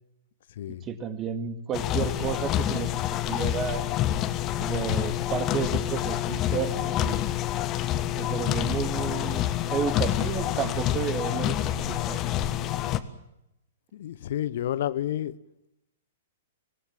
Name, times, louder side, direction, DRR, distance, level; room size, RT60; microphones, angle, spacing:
voice 1, 0.8-3.9 4.6-7.3 8.1-12.7, right 7 dB, 25° right, 2.4 m, -32 dB
sound 1, 1.7-13.0, left 12 dB, 30° left, 1.5 m, -27 dB
voice 2, 13.9-15.3, left 12 dB, 55° left, 0.9 m, -30 dB
25.0 x 18.5 x 7.6 m
figure-of-eight pair, 110°, 0 cm